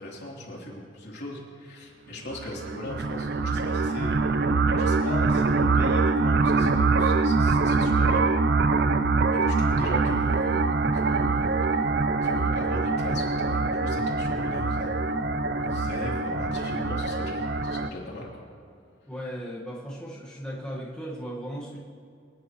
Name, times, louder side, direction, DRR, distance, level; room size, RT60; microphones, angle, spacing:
voice 1, 0.0-4.2 4.7-8.3 9.3-11.9 12.2-15.2 15.6-18.3, left 1 dB, 60° left, -4 dB, 3.4 m, -39 dB
sound 1, 2.3-17.9, right 3 dB, 60° right, 0.6 m, -24 dB
voice 2, 19.1-21.8, equal, 5° left, -6 dB, 1.6 m, -36 dB
25.5 x 10.0 x 3.2 m, 2.5 s
head